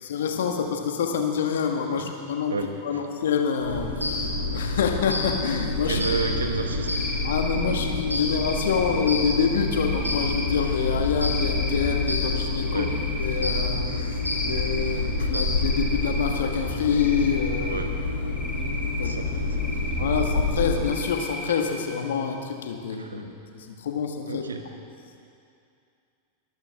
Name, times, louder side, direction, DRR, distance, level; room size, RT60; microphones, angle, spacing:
voice 1, 0.0-2.5 2.8-6.0 7.2-12.9 13.2-17.8 18.6-19.2 20.0-23.3 23.6-24.4, left 6 dB, 60° left, 4 dB, 1.5 m, -27 dB
voice 2, 2.5-3.0 5.8-7.0 12.7-12.9 17.7-17.9 19.0-19.6 20.1-20.2 23.0-23.3 24.2-24.6, right 4 dB, 70° right, 5 dB, 1.3 m, -31 dB
sound 1, 3.6-20.9, left 2 dB, 90° right, 3.1 m, -27 dB
Cricket, 6.9-7.8 8.3-9.2 9.6-10.5 11.2-12.0 12.5-13.4 13.8-15.0 15.6-16.4 16.9-17.8 18.3-19.1 19.5-20.3 20.8-21.6, left 1 dB, 5° left, 2.0 m, -37 dB
22.5 x 13.5 x 3.6 m, 2.5 s
figure-of-eight pair, 90°, 0 cm